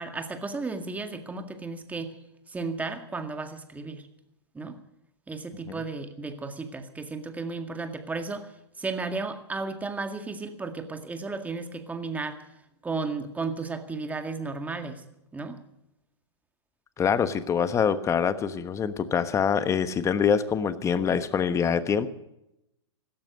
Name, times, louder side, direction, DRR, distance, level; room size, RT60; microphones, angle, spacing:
voice 1, 0.0-2.1 2.5-4.1 4.5-4.8 5.3-8.5 8.8-12.4 12.8-15.0 15.3-15.6, right 3 dB, 10° right, 7 dB, 1.9 m, -34 dB
voice 2, 17.0-22.1, left 7 dB, 20° left, 12 dB, 1.2 m, -25 dB
16.5 x 13.0 x 6.5 m, 0.85 s
hypercardioid pair, 115°, 15 cm